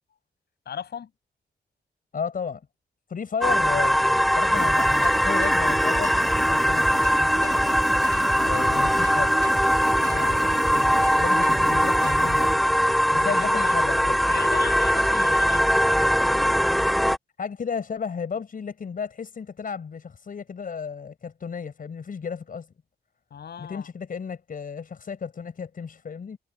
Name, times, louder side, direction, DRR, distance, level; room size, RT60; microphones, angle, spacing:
voice 1, 0.6-1.1 10.0-10.4 13.1-13.7 14.3-16.1 23.3-23.9, left 8 dB, 75° left, 6.6 m, -37 dB
voice 2, 2.1-2.6 3.1-6.9 7.2-7.5 8.4-9.4 10.1-12.6 13.1-14.2 15.1-15.4 17.4-22.7 23.6-26.4, left 6 dB, 55° left, 5.4 m, -33 dB
sound 1, 3.4-17.2, equal, ahead, 0.6 m, -21 dB
sound 2, 4.5-12.5, right 3 dB, 25° right, 2.6 m, -32 dB
wide cardioid pair, 120°, 17 cm